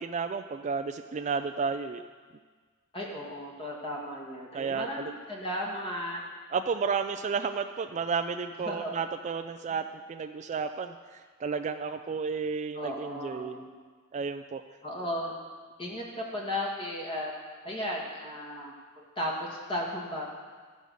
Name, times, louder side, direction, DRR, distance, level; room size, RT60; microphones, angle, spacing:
voice 1, 0.0-2.0 4.5-5.1 6.5-13.6 14.1-14.6, right 5 dB, 30° right, 7 dB, 0.3 m, -32 dB
voice 2, 2.9-6.2 8.6-8.9 12.7-13.8 14.8-15.3 15.8-17.3 17.6-20.3, left 1 dB, 25° left, -2 dB, 1.6 m, -35 dB
13.5 x 5.3 x 6.3 m, 1.5 s
head